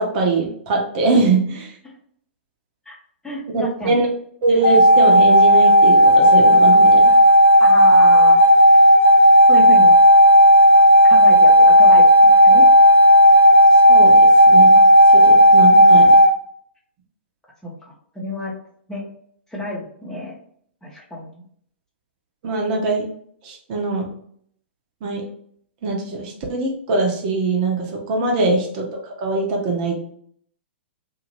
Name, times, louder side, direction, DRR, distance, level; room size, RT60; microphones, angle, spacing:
voice 1, 0.0-1.7 3.5-4.1 4.4-7.1 13.9-14.2 14.5-14.8 15.1-16.2 22.4-23.1 23.4-24.1 25.0-25.2 25.8-30.0, right 3 dB, 45° right, 0 dB, 0.9 m, -22 dB
voice 2, 3.2-4.0 7.6-8.4 9.5-9.9 11.1-12.7 17.6-18.5 18.9-19.1 19.5-20.4 20.8-21.4, left 1 dB, 10° left, -4 dB, 0.9 m, -30 dB
sound 1, 4.6-16.3, equal, 80° left, 0.6 m, -10 dB
2.8 x 2.5 x 3.0 m, 0.63 s
figure-of-eight pair, 115°, 6 cm